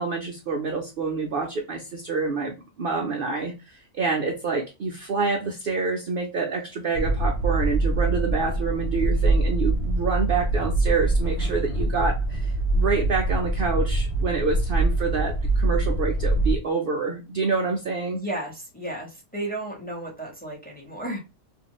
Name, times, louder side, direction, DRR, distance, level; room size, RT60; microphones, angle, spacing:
voice 1, 0.0-18.2, right 4 dB, 70° right, 2 dB, 0.5 m, -27 dB
sound 1, 6.9-16.6, right 2 dB, 70° left, 1.0 m, -24 dB
voice 2, 18.1-21.2, right 1 dB, 10° left, -1 dB, 0.8 m, -33 dB
2.7 x 2.5 x 2.8 m, 0.27 s
omnidirectional pair, 1.5 m